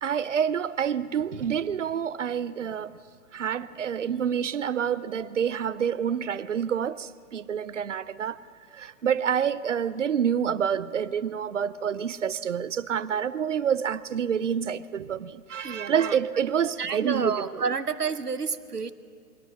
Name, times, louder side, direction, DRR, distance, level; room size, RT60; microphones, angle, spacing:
voice 1, 0.0-3.0 3.3-8.4 8.7-17.7, right 8 dB, 55° right, 0.7 m, -28 dB
voice 2, 15.6-16.2 16.8-18.9, right 5 dB, 80° right, 1.1 m, -30 dB
23.0 x 17.0 x 7.6 m
figure-of-eight pair, 125°, 46 cm